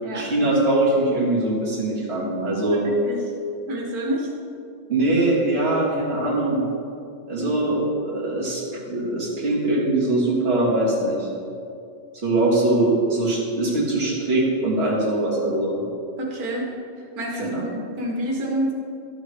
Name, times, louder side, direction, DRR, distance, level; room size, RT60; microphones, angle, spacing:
voice 1, 0.1-2.9 4.9-6.6 7.3-11.3 12.2-15.8 17.4-17.6, right 2 dB, 45° right, -6 dB, 2.0 m, -22 dB
voice 2, 2.7-3.2 3.7-4.3 16.2-16.7 17.2-18.7, right 1 dB, 90° right, -2 dB, 1.6 m, -28 dB
11.5 x 7.7 x 3.3 m, 2.5 s
omnidirectional pair, 1.5 m